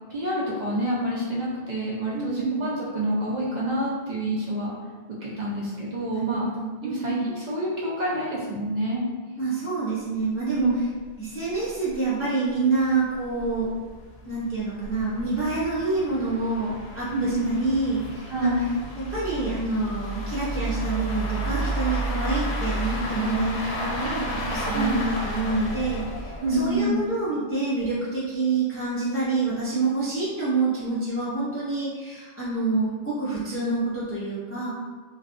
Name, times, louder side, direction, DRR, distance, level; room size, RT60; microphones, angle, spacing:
voice 1, 0.1-4.7 5.2-6.5 6.8-9.0 10.5-10.7 17.1-17.6 18.3-18.7 24.7-25.1 26.4-27.0, right 1 dB, 55° right, -6 dB, 0.6 m, -27 dB
voice 2, 2.1-2.7 6.1-7.3 9.4-10.7 11.2-13.7 14.3-18.5 19.0-34.7, right 3 dB, 20° left, -8 dB, 0.3 m, -27 dB
sound 1, 10.6-10.7 11.0-11.1 11.5-11.6 11.9-12.0 12.7-27.0, right 1 dB, 85° left, 0.8 m, -32 dB
2.7 x 2.3 x 2.4 m, 1.4 s
omnidirectional pair, 1.1 m